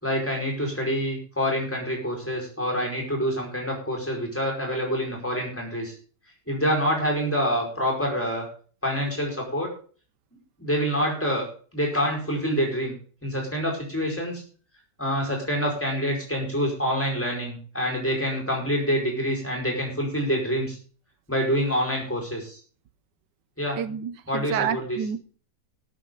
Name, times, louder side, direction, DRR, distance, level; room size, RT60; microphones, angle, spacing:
voice 1, 0.0-5.9 6.5-8.4 8.8-9.7 10.6-11.4 11.7-12.9 13.2-14.4 15.0-20.8 21.3-22.6 23.6-23.8 24.3-25.1, equal, 5° left, -1 dB, 5.0 m, -26 dB
voice 2, 23.8-25.2, right 8 dB, 90° right, 13 dB, 1.5 m, -29 dB
19.5 x 8.5 x 3.9 m, 0.42 s
omnidirectional pair, 1.8 m